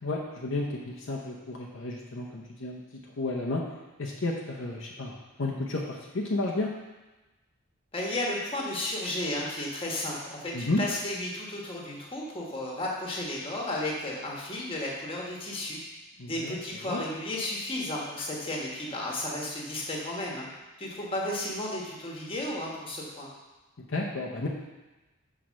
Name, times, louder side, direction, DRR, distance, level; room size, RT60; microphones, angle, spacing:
voice 1, 0.0-2.8 3.2-3.6 4.0-6.7 10.5-10.8 16.2-17.0 23.8-24.5, left 2 dB, 55° left, -2 dB, 0.7 m, -32 dB
voice 2, 7.9-15.8 16.2-20.5 20.8-23.3, left 1 dB, 25° left, -3 dB, 1.3 m, -33 dB
6.1 x 4.5 x 6.3 m, 1.1 s
head